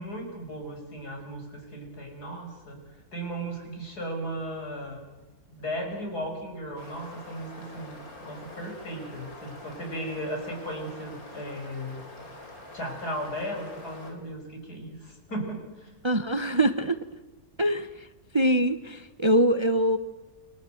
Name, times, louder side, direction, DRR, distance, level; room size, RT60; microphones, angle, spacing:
voice 1, 0.0-2.8 3.1-5.0 5.5-12.0 12.7-15.9, equal, 85° left, 3 dB, 6.7 m, -36 dB
sound 1, 6.8-14.1, left 2 dB, 65° left, 4.9 m, -45 dB
voice 2, 16.0-17.0 17.6-17.9 18.3-20.0, right 1 dB, 25° right, 10 dB, 0.8 m, -23 dB
29.5 x 22.5 x 7.9 m, 1.1 s
omnidirectional pair, 1.6 m